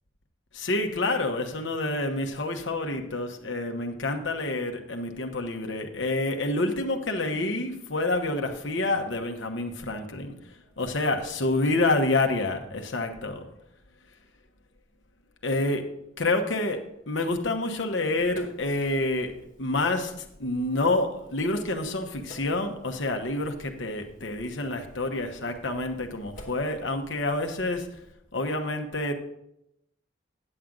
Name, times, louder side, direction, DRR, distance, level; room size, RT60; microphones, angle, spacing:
voice 1, 0.5-13.5 15.4-28.0 28.3-29.1, left 2 dB, 65° left, 4 dB, 1.1 m, -28 dB
Sink (filling or washing), 18.2-28.1, equal, 40° left, 1.6 m, -53 dB
10.0 x 7.6 x 3.8 m, 0.81 s
head